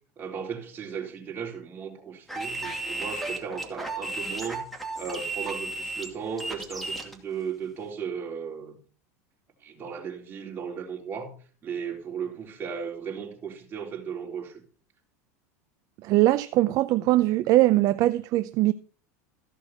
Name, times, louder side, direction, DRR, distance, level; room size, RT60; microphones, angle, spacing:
voice 1, 0.2-4.7 5.0-8.8 9.6-11.3 11.6-14.6, right 6 dB, 25° right, 3.7 m, -36 dB
sound 1, 2.3-7.1, right 2 dB, ahead, 2.4 m, -34 dB
voice 2, 16.0-18.7, right 16 dB, 45° right, 0.6 m, -21 dB
14.5 x 6.2 x 5.8 m
supercardioid pair, 125°, 8 cm